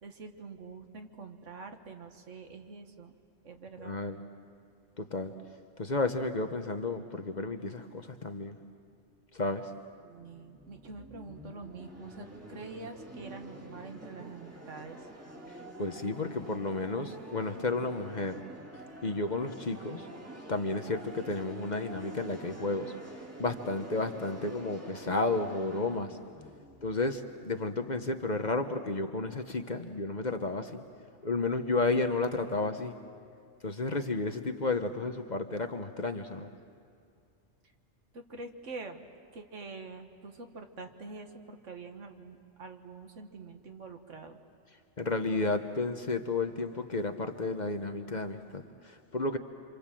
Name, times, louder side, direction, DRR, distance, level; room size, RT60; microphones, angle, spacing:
voice 1, 0.0-3.1 3.4-4.0 10.0-15.1 38.1-39.0 39.3-44.4, right 3 dB, 75° right, 5 dB, 1.8 m, -45 dB
voice 2, 3.8-4.2 5.0-5.3 5.8-8.6 9.3-9.7 15.5-18.4 19.0-20.1 20.5-22.9 23.4-26.2 26.8-30.8 31.2-33.0 33.6-36.5 45.0-49.4, left 3 dB, 40° left, 7 dB, 1.0 m, -32 dB
sound 1, 10.0-27.8, right 1 dB, 10° right, 1.9 m, -47 dB
28.0 x 26.5 x 7.6 m, 2.3 s
omnidirectional pair, 1.3 m